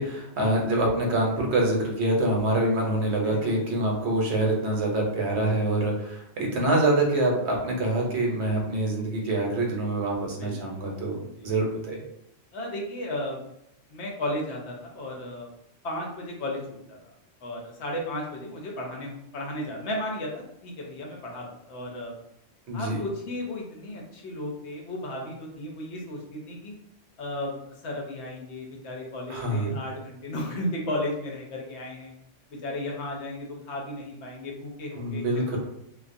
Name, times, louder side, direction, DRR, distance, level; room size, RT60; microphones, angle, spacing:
voice 1, 0.0-12.0 22.7-23.0 29.3-29.7 34.9-35.6, right 1 dB, 65° right, -1 dB, 0.9 m, -25 dB
voice 2, 3.2-3.7 10.4-10.8 11.4-11.5 12.5-13.4 13.9-15.5 15.8-17.0 17.4-22.1 22.7-26.7 27.2-32.1 32.5-35.6, left 1 dB, 70° left, -1 dB, 0.8 m, -34 dB
2.4 x 2.2 x 2.5 m, 0.76 s
omnidirectional pair, 1.3 m